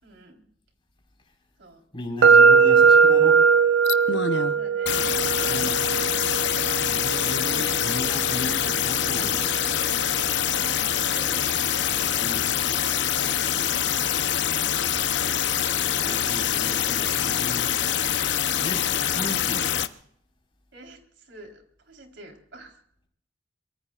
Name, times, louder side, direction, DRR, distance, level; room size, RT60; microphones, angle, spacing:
voice 1, 0.0-0.4 1.6-1.8 2.5-2.8 4.4-5.0 7.5-7.9 10.5-11.5 15.7-16.2 16.5-17.2 20.7-22.8, right 2 dB, 70° right, 2 dB, 4.0 m, -46 dB
voice 2, 1.9-3.4 5.4-5.8 6.8-9.5 12.1-12.5 16.0-17.7 18.6-19.7, left 1 dB, 30° left, 1 dB, 4.7 m, -35 dB
sound 1, 2.2-10.1, right 5 dB, 90° right, 0.7 m, -20 dB
sound 2, 3.8-4.5 4.9-19.9, left 9 dB, 65° left, 0.8 m, -25 dB
24.0 x 23.0 x 2.5 m, 0.66 s
head